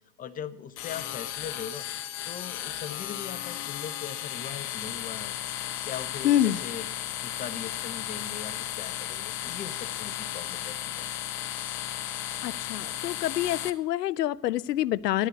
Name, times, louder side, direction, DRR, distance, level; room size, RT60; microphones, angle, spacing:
voice 1, 0.2-1.8 2.2-6.9 7.2-11.1, left 8 dB, 15° left, 0.7 m, -40 dB
sound 1, 0.8-13.7, left 12 dB, 40° left, 1.1 m, -35 dB
voice 2, 6.2-6.6 12.4-15.3, left 13 dB, 80° left, 0.6 m, -26 dB
11.0 x 8.9 x 8.3 m
hypercardioid pair, 105°, 48 cm